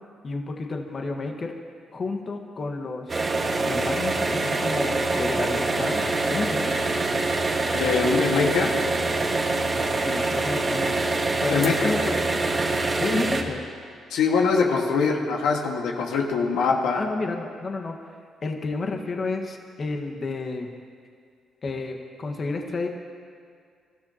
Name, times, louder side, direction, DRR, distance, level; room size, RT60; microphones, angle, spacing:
voice 1, 0.2-1.5 1.9-3.1 3.7-6.7 10.0-11.0 11.4-12.2 13.0-13.6 16.9-18.1 18.4-20.7 21.6-22.9, left 3 dB, 40° left, 2 dB, 1.5 m, -31 dB
sound 1, 3.1-13.4, right 3 dB, 30° right, 1.6 m, -25 dB
voice 2, 7.7-8.7 11.5-11.9 14.1-17.0, left 5 dB, 85° left, 0 dB, 1.7 m, -23 dB
27.0 x 13.5 x 2.9 m, 2.2 s
cardioid pair, 90°, 0 cm